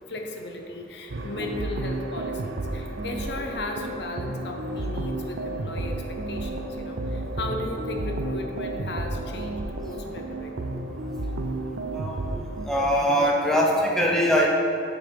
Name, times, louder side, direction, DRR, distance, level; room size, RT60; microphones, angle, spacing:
voice 1, 0.1-10.5, left 2 dB, 65° left, 3 dB, 0.7 m, -36 dB
sound 1, 1.1-12.7, right 2 dB, 75° right, 0.5 m, -32 dB
voice 2, 12.7-14.5, equal, 5° left, -2 dB, 0.5 m, -21 dB
8.6 x 3.8 x 4.6 m, 2.7 s
head